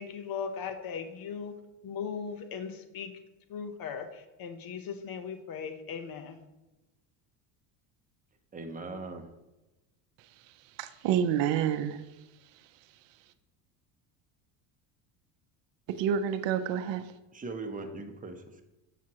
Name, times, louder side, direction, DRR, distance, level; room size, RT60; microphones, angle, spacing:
voice 1, 0.0-1.6 1.8-3.2 3.5-6.4, left 6 dB, 45° left, 9 dB, 0.9 m, -38 dB
voice 2, 8.5-9.3 17.3-18.6, right 3 dB, 15° right, 5 dB, 0.8 m, -40 dB
voice 3, 10.8-12.0 15.9-17.1, right 9 dB, 65° right, 10 dB, 0.7 m, -28 dB
7.2 x 5.9 x 2.9 m, 1.0 s
supercardioid pair, 85°, 48 cm